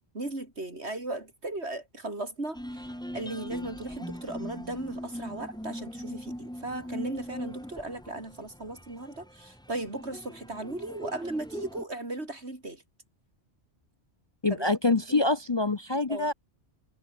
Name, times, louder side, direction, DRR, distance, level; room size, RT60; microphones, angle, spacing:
voice 1, 0.1-12.8 14.5-15.2 16.1-16.3, right 2 dB, 75° right, 5.2 m, -37 dB
sound 1, 2.5-11.8, equal, 5° left, 2.4 m, -40 dB
voice 2, 14.4-16.3, left 3 dB, 30° left, 0.7 m, -25 dB
omnidirectional pair, 1.1 m